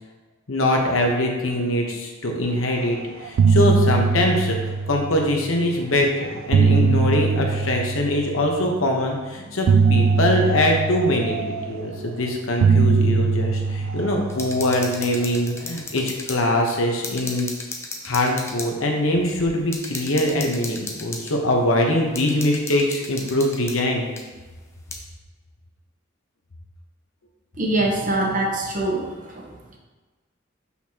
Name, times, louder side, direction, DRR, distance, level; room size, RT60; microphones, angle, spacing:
voice 1, 0.5-11.4 11.7-17.5 18.0-24.1, left 1 dB, 80° left, 1 dB, 1.0 m, -23 dB
sound 1, 2.7-3.0 3.2-5.5 6.2-8.6 9.7-12.1 12.6-15.2, right 5 dB, 75° right, 0.3 m, -21 dB
sound 2, 14.3-16.4 16.7-16.8 17.0-18.7 19.3-19.4 19.7-21.3 22.2-23.8 24.2-24.3 24.9-25.0, left 3 dB, 15° left, 0.5 m, -35 dB
voice 2, 27.6-29.5, right 2 dB, 40° right, -1 dB, 0.9 m, -24 dB
6.3 x 5.6 x 2.9 m, 1.3 s
head